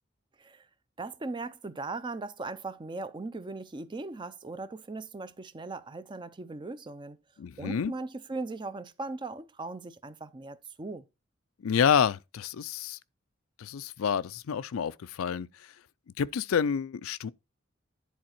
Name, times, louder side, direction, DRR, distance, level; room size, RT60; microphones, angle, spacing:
voice 1, 1.0-7.2 7.6-11.0, right 3 dB, 25° right, 0.5 m, -38 dB
voice 2, 7.4-7.9 11.6-13.0 13.6-15.5 16.2-17.3, left 7 dB, 90° left, 0.4 m, -28 dB
10.5 x 4.1 x 4.4 m
head